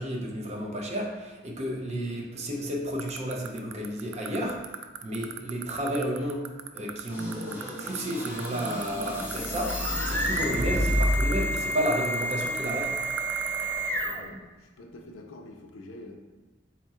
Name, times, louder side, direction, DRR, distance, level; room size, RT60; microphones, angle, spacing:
voice 1, 0.0-4.6 5.0-6.5 6.7-9.8 10.0-13.0, equal, 35° right, -2 dB, 0.7 m, -32 dB
sound 1, 3.0-13.6, right 11 dB, 80° right, 0.3 m, -35 dB
sound 2, 7.1-11.4, equal, 10° right, 1.4 m, -30 dB
sound 3, 9.2-14.4, right 1 dB, 10° left, 0.4 m, -31 dB
voice 2, 14.1-16.2, left 1 dB, 75° left, 4 dB, 0.5 m, -46 dB
4.3 x 2.4 x 4.2 m, 1.2 s
head